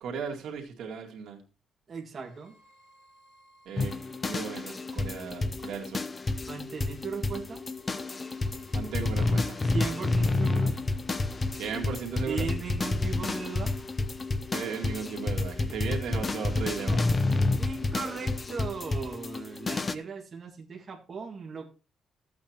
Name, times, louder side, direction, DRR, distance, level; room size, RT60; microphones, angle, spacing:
voice 1, 0.0-1.4 3.7-6.0 8.7-9.6 11.5-12.5 14.5-17.1, right 6 dB, 85° right, 1 dB, 2.2 m, -36 dB
voice 2, 1.9-2.5 6.4-7.6 9.6-10.7 12.3-13.8 17.6-21.6, right 5 dB, 35° right, -1 dB, 1.9 m, -37 dB
sound 1, 2.1-13.4, left 1 dB, 70° left, 2.9 m, -56 dB
sound 2, 3.8-19.9, left 3 dB, 20° left, 0.6 m, -29 dB
14.0 x 8.6 x 2.9 m, 0.32 s
cardioid pair, 160°, 0 cm